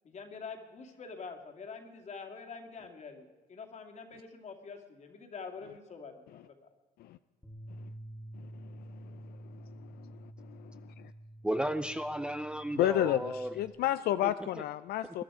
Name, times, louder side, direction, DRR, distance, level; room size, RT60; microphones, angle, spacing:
voice 1, 0.0-6.5, left 5 dB, 45° left, 4 dB, 2.5 m, -46 dB
Bass guitar, 7.4-13.7, right 1 dB, 10° left, 2.0 m, -49 dB
voice 2, 8.3-11.1 12.8-15.2, left 13 dB, 70° left, 13 dB, 0.5 m, -33 dB
voice 3, 11.4-13.6 14.2-14.3, right 1 dB, 5° right, 10 dB, 0.6 m, -34 dB
21.5 x 11.5 x 4.9 m, 1.3 s
cardioid pair, 110°, 17 cm